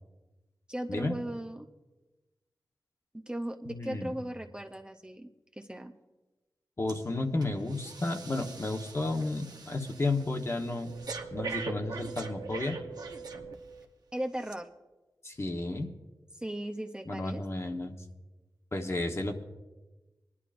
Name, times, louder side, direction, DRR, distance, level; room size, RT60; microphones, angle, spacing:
voice 1, 0.7-1.7 3.1-5.9 14.1-14.7 16.3-17.4, right 1 dB, 10° right, 4 dB, 0.6 m, -37 dB
voice 2, 3.6-4.2 6.8-10.9 11.3-12.8 15.2-15.9 17.1-18.0 18.7-19.4, left 2 dB, 40° left, 3 dB, 1.1 m, -32 dB
Breathing, 6.9-7.1 7.4-13.9 14.4-14.5, right 4 dB, 65° right, 1.0 m, -42 dB
22.0 x 11.0 x 2.5 m, 1.1 s
wide cardioid pair, 75°, 7 cm